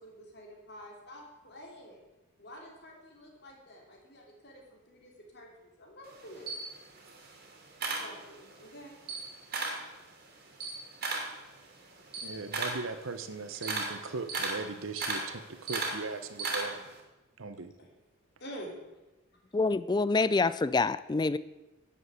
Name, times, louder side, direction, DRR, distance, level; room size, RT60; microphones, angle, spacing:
voice 1, 0.0-2.0 2.4-6.5 7.9-9.0 17.8-17.9 18.4-18.8, equal, 55° left, -1 dB, 3.0 m, -48 dB
Camera, 6.1-8.6 9.0-9.9 10.3-17.0, right 3 dB, 50° right, 2.8 m, -36 dB
voice 2, 12.2-16.8 17.4-17.7, right 4 dB, 75° right, 9 dB, 0.9 m, -39 dB
voice 3, 19.5-21.4, left 3 dB, 20° left, 16 dB, 0.3 m, -26 dB
10.0 x 7.5 x 8.1 m, 1.1 s
head